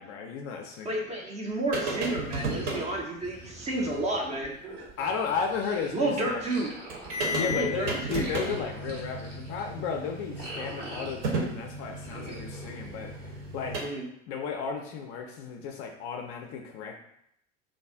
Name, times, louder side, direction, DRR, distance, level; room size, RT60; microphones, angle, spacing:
voice 1, 0.0-1.2 5.0-6.4 7.2-13.8 14.3-16.9, left 6 dB, 40° left, 2 dB, 0.4 m, -34 dB
voice 2, 0.8-4.5 5.9-6.7 7.5-8.2 13.8-14.0, right 1 dB, 20° right, 0 dB, 0.5 m, -31 dB
sound 1, 1.7-2.9 4.4-4.5 4.9-5.0 6.6-6.7 6.9-13.8, right 1 dB, 45° right, 0.8 m, -34 dB
sound 2, 2.3-6.0 6.3-11.6 12.0-13.7, right 1 dB, 70° right, 1.1 m, -45 dB
2.6 x 2.3 x 3.4 m, 0.74 s
figure-of-eight pair, 70°, 38 cm